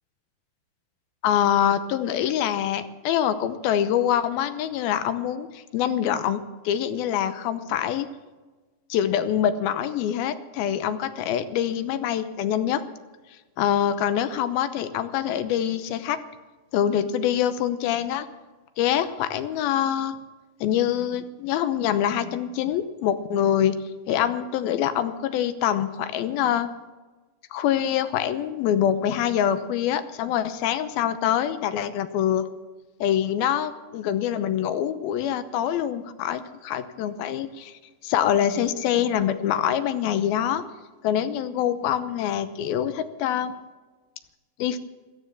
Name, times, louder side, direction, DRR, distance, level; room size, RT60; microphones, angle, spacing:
voice 1, 1.2-8.1 8.9-12.8 13.6-16.2 16.7-18.3 18.8-20.2 20.6-23.8 24.1-26.7 27.5-32.5 33.0-40.6 41.0-43.5 44.6-44.8, left 10 dB, 85° left, 11 dB, 2.7 m, -25 dB
15.0 x 13.5 x 7.1 m, 1.3 s
omnidirectional pair, 4.3 m